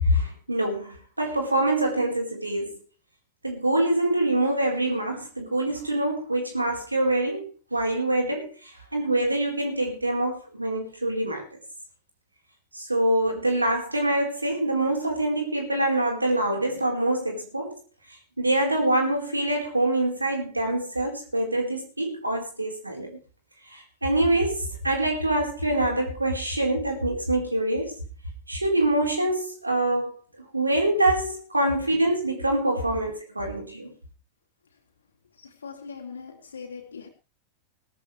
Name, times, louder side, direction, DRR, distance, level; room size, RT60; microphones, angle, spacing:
voice 1, 0.0-2.7 3.4-11.4 12.7-17.7 18.4-23.2 23.7-28.0 28.5-30.1 30.5-33.9, right 1 dB, 85° right, 4.4 m, -25 dB
voice 2, 35.4-37.1, left 5 dB, 70° left, 3.0 m, -40 dB
18.5 x 13.5 x 3.4 m
figure-of-eight pair, 90°, 0 cm